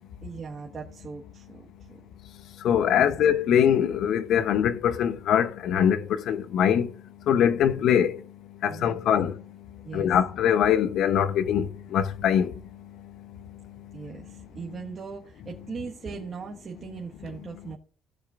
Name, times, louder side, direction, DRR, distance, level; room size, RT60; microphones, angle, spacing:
voice 1, 0.2-2.0 2.9-3.2 8.7-9.0 9.8-10.1 13.9-17.8, right 5 dB, 40° right, 1.5 m, -39 dB
voice 2, 2.6-6.9 7.3-8.1 8.6-9.3 9.9-12.5, left 9 dB, 70° left, 0.8 m, -22 dB
17.0 x 6.6 x 2.5 m
cardioid pair, 95°, 0 cm